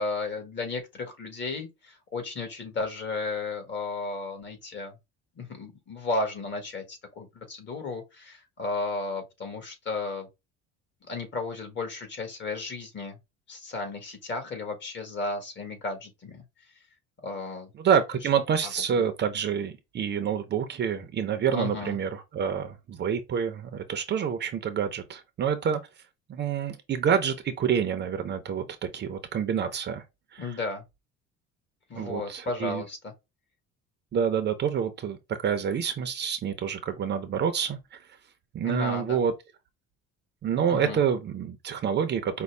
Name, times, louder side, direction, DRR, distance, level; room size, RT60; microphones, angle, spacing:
voice 1, 0.0-5.0 5.3-10.3 11.1-13.2 13.5-16.4 17.2-17.7 18.6-19.0 21.5-22.0 30.4-30.8 31.9-33.1 38.6-39.2 40.7-41.0, left 3 dB, 40° left, 1.7 m, -34 dB
voice 2, 17.8-25.8 26.3-30.0 30.3-30.6 31.9-32.8 34.1-38.0 38.5-39.3 40.4-42.4, right 7 dB, 35° right, 0.6 m, -27 dB
5.3 x 2.2 x 3.3 m
cardioid pair, 140°, 29 cm